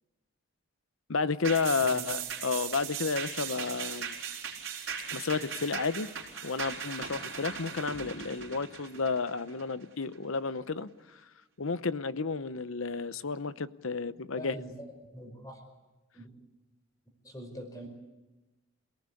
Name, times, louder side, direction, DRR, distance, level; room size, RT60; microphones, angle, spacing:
voice 1, 1.1-4.2 5.1-6.1 6.4-10.9 11.6-14.5, left 4 dB, 70° left, 14 dB, 0.9 m, -31 dB
sound 1, 1.4-10.2 10.6-10.7, right 7 dB, 65° right, 4.8 m, -38 dB
voice 2, 1.8-2.1 14.4-15.6 16.1-16.3 17.2-17.9, equal, 15° left, 4 dB, 5.4 m, -43 dB
28.0 x 18.5 x 8.4 m, 1.1 s
head